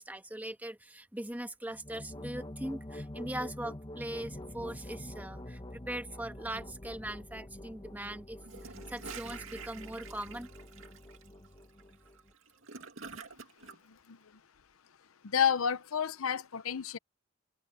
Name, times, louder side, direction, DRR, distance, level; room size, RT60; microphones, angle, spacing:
voice 1, 0.0-10.5, right 1 dB, 10° right, 1.7 m, -41 dB
sound 1, 1.7-12.3, left 1 dB, 25° left, 1.2 m, -46 dB
Gurgling / Toilet flush, 8.4-13.8, right 5 dB, 70° right, 2.4 m, -48 dB
voice 2, 15.2-17.0, left 7 dB, 85° left, 0.7 m, -30 dB
head